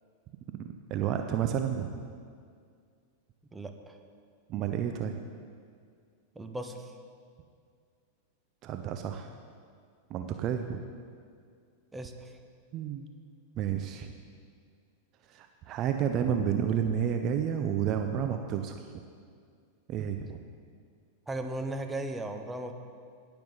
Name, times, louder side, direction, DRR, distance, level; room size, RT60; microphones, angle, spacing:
voice 1, 0.5-2.0 4.5-5.2 8.6-9.3 10.1-10.8 12.7-13.1 13.6-14.1 15.3-18.8 19.9-20.4, right 8 dB, 40° right, 6 dB, 0.7 m, -30 dB
voice 2, 3.5-4.0 6.3-6.9 11.9-12.4 21.3-22.7, right 1 dB, 10° right, 5 dB, 1.0 m, -37 dB
19.0 x 6.9 x 4.0 m, 2.1 s
hypercardioid pair, 95°, 0 cm